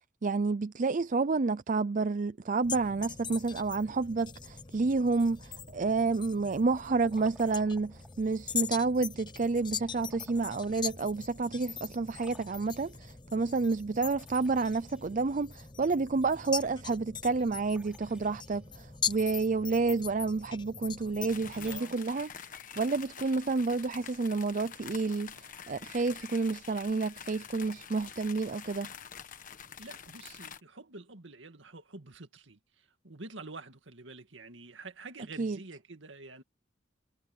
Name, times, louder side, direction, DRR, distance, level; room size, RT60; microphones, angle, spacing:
voice 1, 0.2-22.3 22.8-25.3 25.7-28.9 35.4-35.6, right 3 dB, 45° right, 0.5 m, -30 dB
sound 1, 2.6-21.8, left 7 dB, 25° left, 0.7 m, -41 dB
Liquid, 6.7-8.3 9.7-10.8 11.3-11.4 12.1-13.1 14.0-15.6 17.6-19.0 21.5-23.2, right 1 dB, 5° right, 5.5 m, -58 dB
sound 2, 21.3-30.6, left 7 dB, 45° left, 1.2 m, -47 dB
voice 2, 21.5-21.9 29.8-36.4, right 3 dB, 80° right, 2.1 m, -47 dB
head